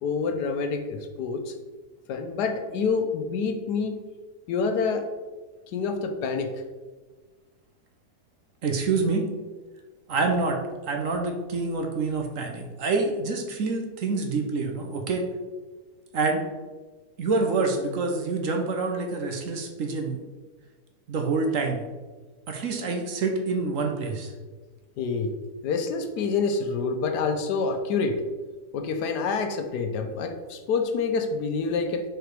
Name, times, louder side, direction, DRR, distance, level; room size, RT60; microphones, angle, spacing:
voice 1, 0.0-1.5 2.1-4.0 4.5-5.0 5.7-6.5 25.0-25.3 25.6-28.2 28.7-32.0, left 5 dB, 80° left, 6 dB, 1.3 m, -27 dB
voice 2, 8.6-9.3 10.1-10.6 10.9-15.2 16.1-16.4 17.2-20.2 21.1-21.8 22.5-24.3, right 3 dB, 60° right, 3 dB, 1.0 m, -27 dB
4.9 x 4.7 x 4.6 m, 1.3 s
omnidirectional pair, 1.8 m